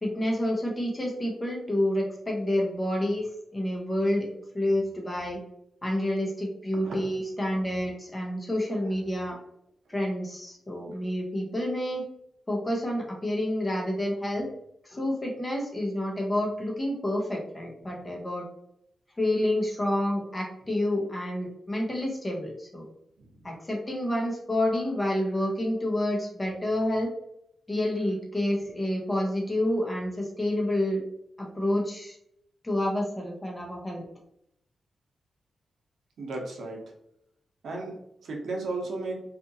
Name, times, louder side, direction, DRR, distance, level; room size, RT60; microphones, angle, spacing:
voice 1, 0.0-3.3 3.5-4.3 4.5-5.4 5.8-9.4 9.9-12.0 12.5-14.5 14.8-18.4 19.2-22.9 23.4-27.1 27.7-31.0 31.4-32.2 32.6-34.0, left 1 dB, 20° left, -1 dB, 0.7 m, -28 dB
voice 2, 36.2-36.8 37.6-38.0 38.2-39.2, right 2 dB, 75° right, 0 dB, 0.7 m, -34 dB
2.7 x 2.5 x 2.6 m, 0.74 s
wide cardioid pair, 145°, 0 cm